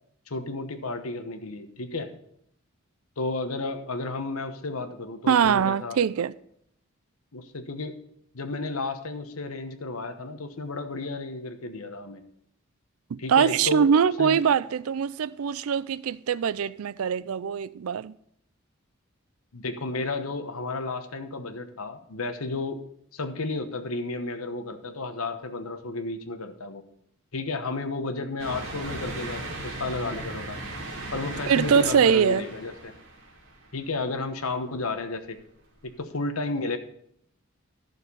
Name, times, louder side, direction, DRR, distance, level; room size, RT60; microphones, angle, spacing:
voice 1, 0.3-2.1 3.2-6.0 7.3-8.0 8.3-12.2 13.2-13.9 14.2-14.4 19.5-22.8 23.1-26.8 27.3-30.6 31.1-32.9 33.7-35.4 35.8-36.8, left 3 dB, 80° left, 1.1 m, -32 dB
voice 2, 5.3-6.3 13.1-18.1 31.5-32.4, right 7 dB, 80° right, 0.4 m, -23 dB
sound 1, 28.4-34.0 34.5-34.6 35.9-36.0, right 2 dB, 65° right, 3.2 m, -37 dB
12.0 x 6.6 x 5.4 m
head